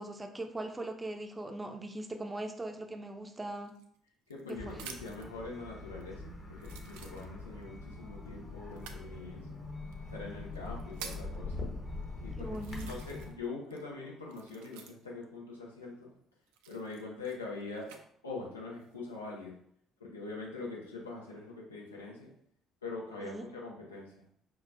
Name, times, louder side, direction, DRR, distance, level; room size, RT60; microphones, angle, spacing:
voice 1, 0.0-3.7 4.5-4.8 12.4-12.9 23.2-23.4, right 2 dB, 20° right, 5 dB, 0.5 m, -40 dB
sound 1, 3.6-5.3 6.0-6.1 6.6-7.6 8.7-9.1 9.9-10.0 10.6-11.4 12.0-12.1 12.5-13.4 13.7-15.2 16.5-18.0 18.7-19.2, right 7 dB, 70° right, 0.4 m, -49 dB
voice 2, 4.3-9.4 10.0-11.5 12.2-12.6 12.8-16.1 16.7-17.9 18.2-19.6 20.0-22.3 22.8-24.1, left 3 dB, 85° left, -3 dB, 0.8 m, -43 dB
sound 2, 4.5-13.3, left 2 dB, 35° left, 1.0 m, -43 dB
5.7 x 2.3 x 2.6 m, 0.66 s
figure-of-eight pair, 45°, 0 cm